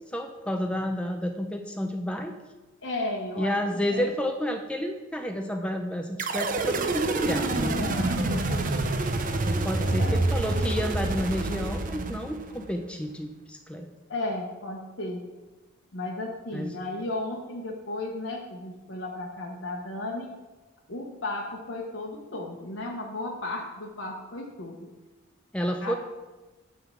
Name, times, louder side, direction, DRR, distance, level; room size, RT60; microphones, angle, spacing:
voice 1, 0.1-2.3 3.4-7.9 9.2-13.9 16.5-16.7 25.5-25.9, equal, 5° left, 4 dB, 0.5 m, -30 dB
voice 2, 2.8-4.1 7.3-8.7 9.7-10.3 14.1-15.2 15.9-20.3 20.9-24.9 25.8-26.0, left 2 dB, 70° left, -1 dB, 1.1 m, -35 dB
sound 1, 6.2-12.7, right 2 dB, 40° right, 0.7 m, -27 dB
9.6 x 3.8 x 7.1 m, 1.2 s
head